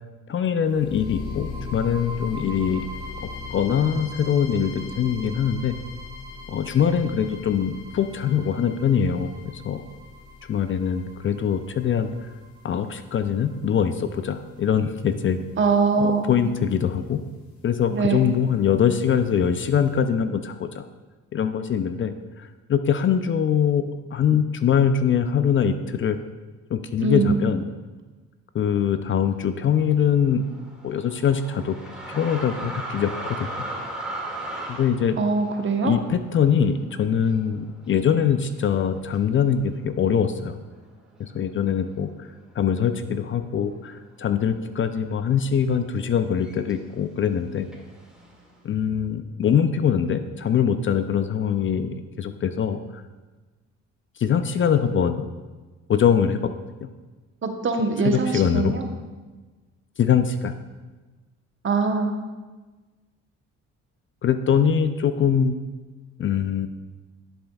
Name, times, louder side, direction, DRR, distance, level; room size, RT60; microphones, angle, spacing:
voice 1, 0.3-2.9 3.5-5.8 6.5-9.8 10.5-12.1 12.6-15.4 16.0-17.2 17.6-20.8 21.3-23.8 24.1-26.2 26.7-27.7 28.5-30.4 30.8-31.8 32.1-33.5 34.7-35.2 35.8-40.6 41.2-42.3 42.6-47.7 48.6-53.0 54.2-55.3 55.9-56.4 56.8-56.9 58.0-58.7 60.0-60.5 64.2-65.6 66.2-66.8, left 8 dB, 40° left, 10 dB, 0.5 m, -23 dB
sound 1, 0.7-14.7, left 3 dB, 65° left, 1.7 m, -39 dB
voice 2, 15.6-16.3 17.9-18.3 27.0-27.4 35.2-35.9 57.4-58.8 61.6-62.1, right 4 dB, 40° right, 4 dB, 1.0 m, -22 dB
sound 2, 29.9-37.5 37.8-38.0 38.7-39.2 39.9-40.0 40.3-42.0 42.4-42.9 43.2-46.9 47.7-48.6, right 1 dB, 5° right, 2.1 m, -38 dB
11.0 x 7.6 x 2.3 m, 1.3 s
cardioid pair, 90°, 30 cm